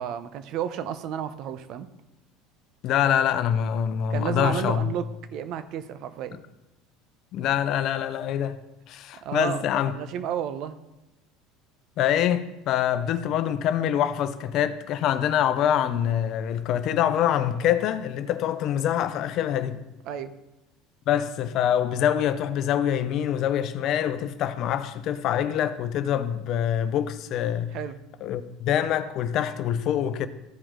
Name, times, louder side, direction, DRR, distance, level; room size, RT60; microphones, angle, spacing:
voice 1, 0.0-1.9 4.1-5.0 5.3-6.4 9.2-10.8 20.1-20.3 27.7-28.0, right 9 dB, 60° right, 0.7 m, -32 dB
voice 2, 2.8-4.9 7.3-8.6 8.9-9.9 12.0-19.8 21.1-27.7 28.2-30.3, left 10 dB, 55° left, 0.6 m, -25 dB
14.5 x 5.0 x 3.7 m
supercardioid pair, 90°, 0 cm